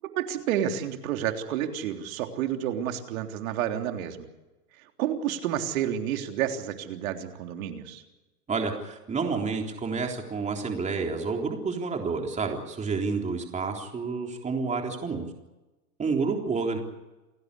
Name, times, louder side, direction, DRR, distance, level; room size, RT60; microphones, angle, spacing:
voice 1, 0.1-4.2 5.0-8.0, right 10 dB, 60° right, 4 dB, 3.6 m, -30 dB
voice 2, 8.5-15.2 16.0-16.8, right 4 dB, 15° right, 2 dB, 3.7 m, -29 dB
29.0 x 16.0 x 8.4 m, 1.1 s
hypercardioid pair, 125°, 47 cm